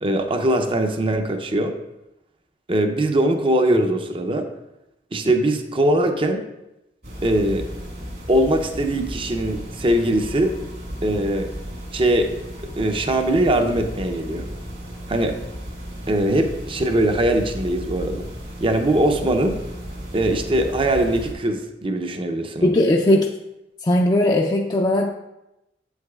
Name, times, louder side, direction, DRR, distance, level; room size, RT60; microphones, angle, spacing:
voice 1, 0.0-1.7 2.7-4.5 5.1-6.4 7.2-7.7 8.3-10.5 11.0-11.5 11.9-12.3 12.8-14.4 15.1-15.4 16.1-18.3 18.6-19.6 20.1-22.8, right 1 dB, 30° right, 6 dB, 0.6 m, -21 dB
sound 1, 7.0-21.3, equal, 65° right, 2.4 m, -35 dB
voice 2, 22.6-23.3 23.8-25.1, left 1 dB, 25° left, 0 dB, 0.4 m, -18 dB
8.1 x 8.0 x 2.3 m, 0.92 s
head